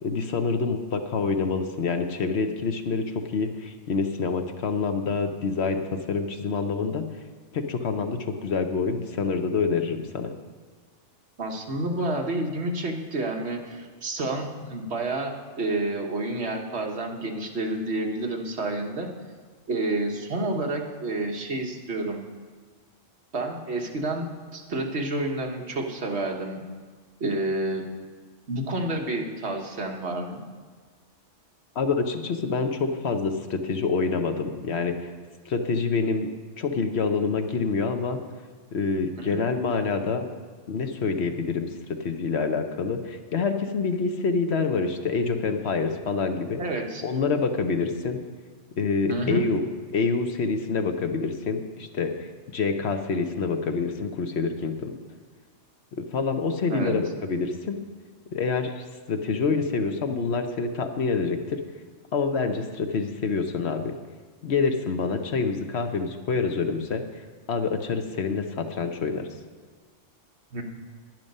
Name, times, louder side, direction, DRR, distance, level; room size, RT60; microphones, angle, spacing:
voice 1, 0.0-7.0 7.5-10.3 31.8-35.1 35.5-36.3 36.6-38.2 38.7-40.3 40.7-41.7 42.0-46.6 47.0-48.2 48.8-49.6 49.9-54.9 56.0-57.8 58.3-61.6 62.1-64.0 64.4-67.0 67.5-69.3, left 4 dB, 60° left, 6 dB, 1.0 m, -27 dB
voice 2, 11.4-19.1 19.7-22.2 23.3-24.3 24.5-26.6 27.2-27.9 28.5-30.4 39.2-39.5 46.6-47.0 49.1-49.5 56.7-57.0 70.5-70.6, right 2 dB, 60° right, 2 dB, 1.4 m, -29 dB
11.0 x 10.5 x 5.4 m, 1.5 s
omnidirectional pair, 1.3 m